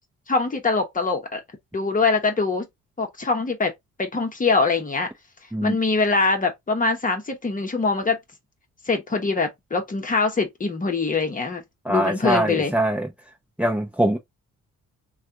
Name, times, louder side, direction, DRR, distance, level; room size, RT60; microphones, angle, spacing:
voice 1, 0.3-1.4 1.7-2.7 3.0-3.7 4.0-5.1 5.6-8.2 8.9-11.6 11.9-12.7, left 4 dB, 25° left, 1.1 m, -23 dB
voice 2, 11.8-13.1 13.6-14.2, right 1 dB, 5° right, 0.8 m, -22 dB
3.3 x 2.4 x 2.7 m
cardioid pair, 90°, 30 cm